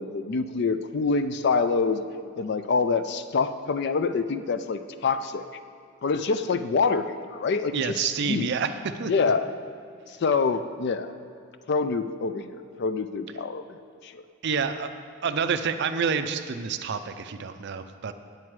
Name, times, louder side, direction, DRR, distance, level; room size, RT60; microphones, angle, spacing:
voice 1, 0.0-2.0 2.4-5.4 6.0-8.5 9.1-9.5 10.1-11.1 11.7-14.2, left 4 dB, 50° left, 11 dB, 0.4 m, -26 dB
voice 2, 7.7-8.7 9.0-9.1 14.4-14.9 15.2-18.1, right 6 dB, 50° right, 9 dB, 0.4 m, -28 dB
9.4 x 7.6 x 4.7 m, 2.4 s
head